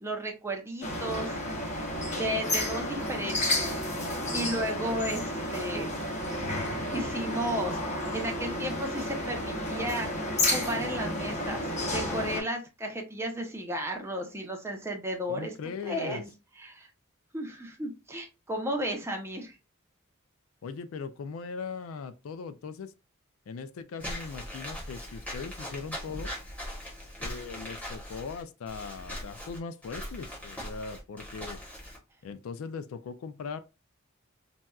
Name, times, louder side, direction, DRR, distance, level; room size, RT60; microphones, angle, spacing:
voice 1, 0.0-1.3 2.2-3.6 4.3-5.2 5.5-5.9 6.9-10.1 10.5-15.5 15.8-16.3 16.6-16.9 17.3-19.6, right 1 dB, 10° right, 0.6 m, -34 dB
sound 1, 0.8-12.4, left 1 dB, 35° left, 0.9 m, -31 dB
voice 2, 15.3-16.2 20.6-22.9 23.5-26.3 27.2-31.6 32.2-33.6, left 5 dB, 75° left, 0.3 m, -39 dB
Walk footsteps / Squeak, 24.0-32.0, equal, 5° left, 1.0 m, -40 dB
4.1 x 2.2 x 2.3 m
head